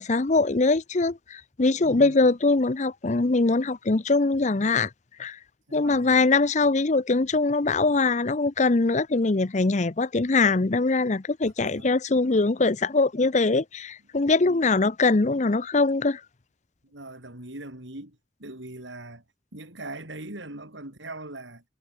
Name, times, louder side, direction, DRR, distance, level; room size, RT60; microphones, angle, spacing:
voice 1, 0.0-4.9 5.2-5.4 5.7-16.2, left 3 dB, 40° left, 0.7 m, -22 dB
voice 2, 1.8-2.3 5.7-6.2 11.4-11.9 14.4-14.6 16.9-19.2 19.5-21.6, right 2 dB, 80° right, 5.2 m, -41 dB
head